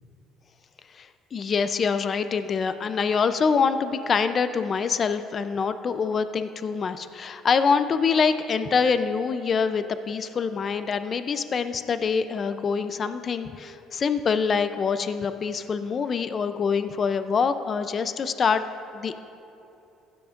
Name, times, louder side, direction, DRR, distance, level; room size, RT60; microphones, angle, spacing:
voice 1, 0.9-18.7 18.9-19.2, left 5 dB, 40° left, 11 dB, 0.5 m, -25 dB
15.5 x 9.8 x 2.5 m, 2.8 s
cardioid pair, 95°, 0 cm